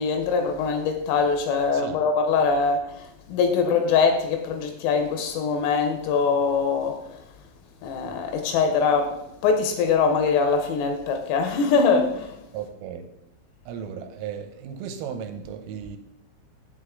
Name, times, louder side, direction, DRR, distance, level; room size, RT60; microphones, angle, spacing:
voice 1, 0.0-7.0 7.8-12.3, left 5 dB, 80° left, 3.4 m, -23 dB
voice 2, 12.5-13.1 13.7-16.0, right 7 dB, 80° right, 3.2 m, -35 dB
8.0 x 7.9 x 3.7 m
omnidirectional pair, 6.0 m